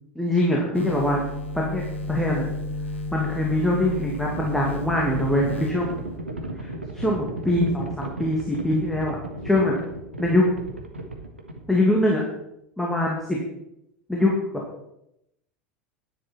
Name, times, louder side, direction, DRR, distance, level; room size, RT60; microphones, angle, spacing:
voice 1, 0.2-1.2 1.7-1.8 2.1-2.5 3.1-5.9 6.6-9.2 9.4-9.7 10.2-10.4 11.7-12.2 12.8-13.4 14.1-14.3, left 1 dB, 5° left, -3 dB, 2.3 m, -23 dB
sound 1, 0.7-6.2, left 2 dB, 80° left, 1.5 m, -32 dB
Livestock farm animals working animals, 3.1-12.0, right 1 dB, 85° right, 1.5 m, -35 dB
10.5 x 10.0 x 4.5 m, 0.83 s
figure-of-eight pair, 80°, 6 cm